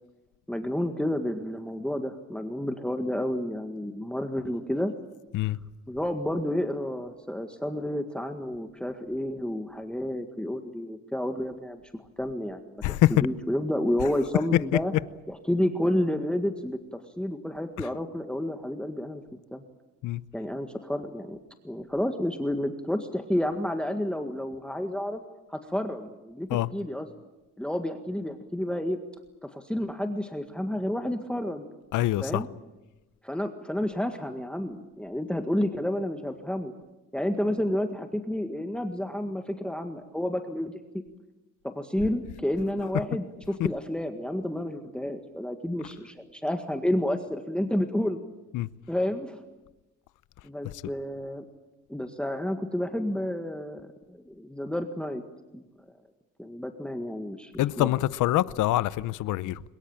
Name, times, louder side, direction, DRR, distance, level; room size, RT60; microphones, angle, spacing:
voice 1, 0.5-4.9 5.4-5.5 5.9-12.8 13.1-14.9 15.3-19.6 20.3-21.4 21.6-25.2 25.5-27.1 27.6-29.0 29.4-31.7 32.2-32.5 33.2-36.7 37.1-40.8 41.6-48.2 48.9-49.4 50.4-51.5 51.9-55.2 55.5-55.6 56.4-57.9, left 1 dB, 5° left, 1.8 m, -30 dB
voice 2, 12.8-13.1 20.0-20.2 26.5-26.7 31.9-32.4 48.5-48.7 57.6-59.6, left 15 dB, 85° left, 0.8 m, -25 dB
23.0 x 21.5 x 8.9 m
cardioid pair, 90°, 30 cm